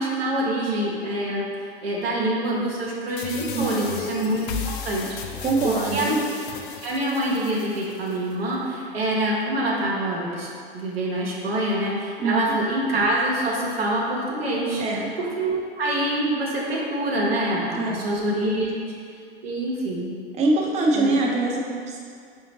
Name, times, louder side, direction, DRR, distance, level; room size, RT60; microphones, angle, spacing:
voice 1, 0.0-5.2 5.6-6.2 6.8-10.5 10.7-14.8 15.2-18.9 19.4-20.2 20.9-21.1, right 1 dB, 85° right, -4 dB, 0.9 m, -25 dB
sound 1, 3.2-8.2, left 7 dB, 60° left, 0.5 m, -35 dB
voice 2, 3.5-3.9 5.4-6.2 12.2-12.5 14.8-15.1 17.7-18.1 20.4-22.0, right 2 dB, 25° right, -2 dB, 0.5 m, -24 dB
4.9 x 2.6 x 2.9 m, 2.3 s
hypercardioid pair, 90°, 29 cm